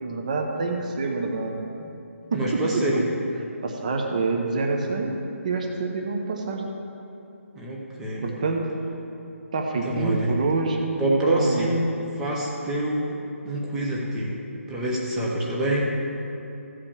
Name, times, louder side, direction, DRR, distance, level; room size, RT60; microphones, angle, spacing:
voice 1, 0.0-1.6 2.3-3.0 3.6-6.6 8.2-8.7 9.5-11.7, right 3 dB, 30° right, 2 dB, 0.9 m, -26 dB
voice 2, 2.3-3.0 7.5-8.2 9.8-10.4 11.0-13.2 13.4-14.3 14.7-15.9, right 1 dB, 5° right, -4 dB, 0.7 m, -26 dB
15.0 x 5.0 x 7.2 m, 2.8 s
hypercardioid pair, 175°, 8 cm